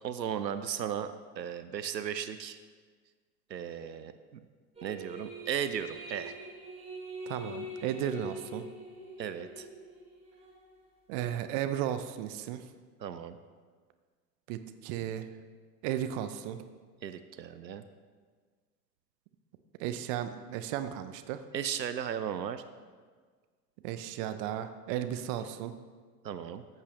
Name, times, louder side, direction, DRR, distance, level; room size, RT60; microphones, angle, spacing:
voice 1, 0.0-2.6 3.5-4.1 4.8-6.4 9.2-9.7 13.0-13.4 17.0-17.8 21.5-22.6 26.2-26.6, right 8 dB, 80° right, 11 dB, 0.6 m, -36 dB
sound 1, 4.8-10.6, equal, 10° right, 2.6 m, -44 dB
voice 2, 7.3-8.6 11.1-12.6 14.5-15.3 15.8-16.6 19.8-21.4 23.8-25.7, right 11 dB, 30° right, 11 dB, 0.5 m, -34 dB
13.5 x 8.1 x 3.1 m, 1.5 s
figure-of-eight pair, 85°, 50 cm